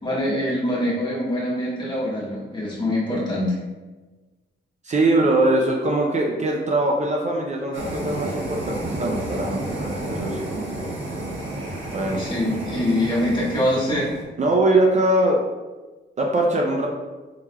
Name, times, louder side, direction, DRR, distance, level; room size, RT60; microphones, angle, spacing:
voice 1, 0.0-3.6 12.2-14.1, left 1 dB, 25° left, -7 dB, 1.4 m, -24 dB
voice 2, 4.8-10.5 11.9-12.2 14.4-15.4 16.2-16.9, right 2 dB, 35° right, 0 dB, 0.4 m, -21 dB
sound 1, 7.7-14.2, right 1 dB, 80° right, 1.3 m, -31 dB
4.8 x 3.5 x 2.2 m, 1.2 s
wide cardioid pair, 130°, 20 cm